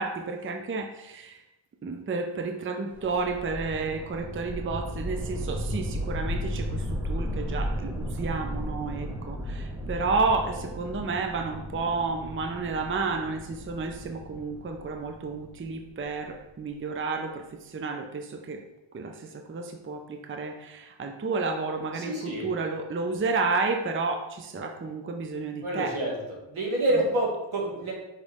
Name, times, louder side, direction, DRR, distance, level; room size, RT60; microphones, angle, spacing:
voice 1, 0.0-1.4 1.8-18.6 18.9-26.0, right 4 dB, 25° right, 5 dB, 0.5 m, -31 dB
sound 1, 2.9-16.0, equal, 5° right, 0.9 m, -35 dB
voice 2, 21.9-22.5 25.6-26.1 26.5-27.9, right 1 dB, 75° right, -2 dB, 2.0 m, -27 dB
5.3 x 5.2 x 3.5 m, 0.96 s
cardioid pair, 75°, 49 cm